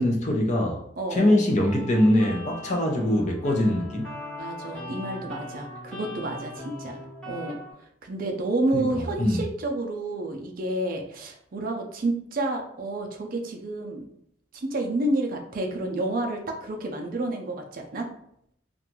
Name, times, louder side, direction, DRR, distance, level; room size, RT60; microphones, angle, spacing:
voice 1, 0.0-0.8 1.1-4.2 8.7-8.8 9.2-9.4, left 1 dB, 40° left, 1 dB, 0.5 m, -22 dB
voice 2, 1.0-1.4 4.4-7.0 7.3-14.1 14.5-18.1, right 2 dB, 50° right, 2 dB, 0.4 m, -30 dB
sound 1, 1.6-7.7, left 1 dB, 5° left, 0.8 m, -40 dB
2.5 x 2.3 x 2.9 m, 0.70 s
head